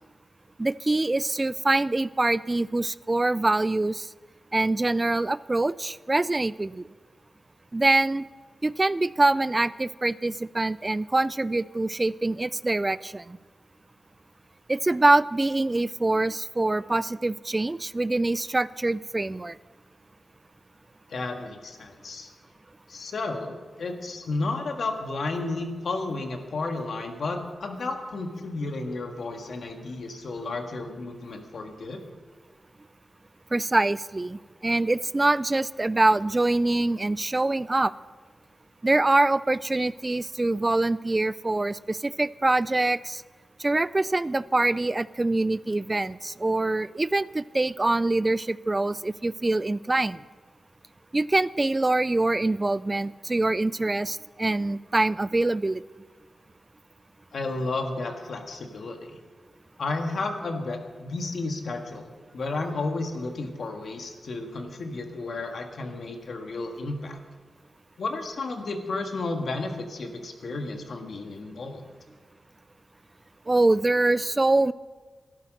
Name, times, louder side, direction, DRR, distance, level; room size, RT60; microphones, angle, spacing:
voice 1, 0.6-4.1 4.5-6.9 7.7-8.2 8.6-13.4 14.7-19.6 33.5-37.9 38.8-43.2 43.6-50.2 51.1-55.8 73.5-74.7, right 2 dB, 25° right, 18 dB, 0.3 m, -24 dB
voice 2, 21.1-22.3 22.9-32.0 57.3-59.2 59.8-67.2 68.0-71.8, left 3 dB, 75° left, 4 dB, 1.7 m, -32 dB
13.0 x 11.5 x 6.5 m, 1.4 s
cardioid pair, 75°, 0 cm